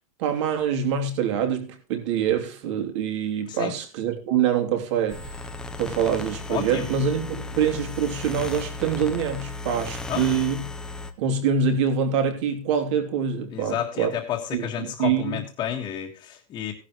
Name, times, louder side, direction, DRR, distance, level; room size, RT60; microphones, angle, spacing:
voice 1, 0.2-5.3 5.8-10.7 11.2-14.1 14.5-15.4, right 7 dB, 55° right, 3.0 m, -25 dB
sound 1, 5.1-11.1, left 2 dB, 5° left, 0.8 m, -35 dB
voice 2, 6.5-6.9 10.1-10.3 13.5-16.7, left 10 dB, 20° left, 1.7 m, -31 dB
16.0 x 11.5 x 3.1 m
supercardioid pair, 175°, 18 cm